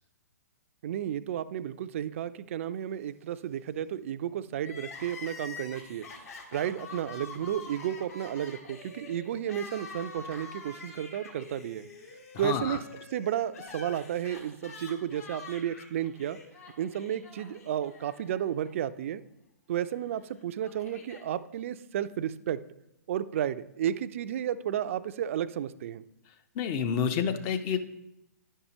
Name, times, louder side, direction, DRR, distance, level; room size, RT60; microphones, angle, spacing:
voice 1, 0.8-6.0 6.5-11.9 12.4-12.8 13.1-16.4 16.8-19.2 19.7-22.6 23.1-26.0, right 10 dB, 50° right, 13 dB, 0.3 m, -32 dB
Crying sobbing, 4.6-18.7 19.0-19.1 20.1-21.2, left 4 dB, 60° left, 1.4 m, -46 dB
voice 2, 12.3-12.8 26.6-27.8, left 7 dB, 30° left, 9 dB, 0.5 m, -29 dB
9.9 x 5.5 x 2.9 m, 0.88 s
hypercardioid pair, 130°, 9 cm